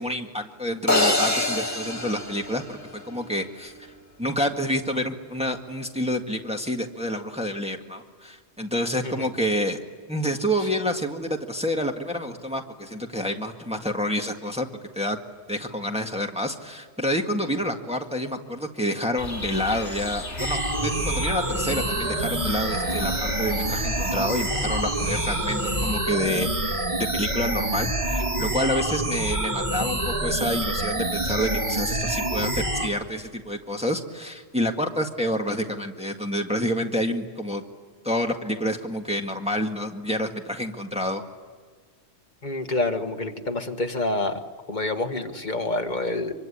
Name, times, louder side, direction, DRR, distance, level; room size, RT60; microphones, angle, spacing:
voice 1, 0.0-3.7 4.2-9.8 10.1-14.7 14.9-15.2 15.5-37.6 38.0-41.2, equal, 5° right, 3 dB, 1.7 m, -28 dB
sound 1, 0.9-3.2, left 2 dB, 15° left, 1.9 m, -25 dB
sound 2, 19.2-26.0, left 2 dB, 85° left, 3.1 m, -36 dB
sound 3, 20.4-32.9, right 1 dB, 25° right, 2.1 m, -27 dB
voice 2, 42.4-44.4 44.7-46.3, left 2 dB, 40° left, 6 dB, 1.8 m, -27 dB
25.0 x 24.0 x 10.0 m, 1.5 s
omnidirectional pair, 1.2 m